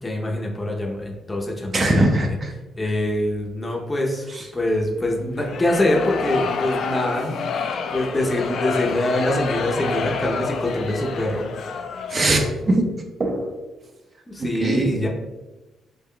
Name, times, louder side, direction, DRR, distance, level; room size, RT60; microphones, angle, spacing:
voice 1, 0.0-2.3 2.8-11.4 14.3-15.1, left 1 dB, 20° left, 0 dB, 0.6 m, -24 dB
voice 2, 1.7-2.3 4.3-4.4 12.1-12.9 13.2-13.5 14.4-14.9, right 2 dB, 40° right, 3 dB, 0.5 m, -21 dB
sound 1, 5.4-12.6, left 5 dB, 65° left, 0.3 m, -28 dB
3.4 x 2.2 x 3.7 m, 1.1 s
cardioid pair, 90°, 0 cm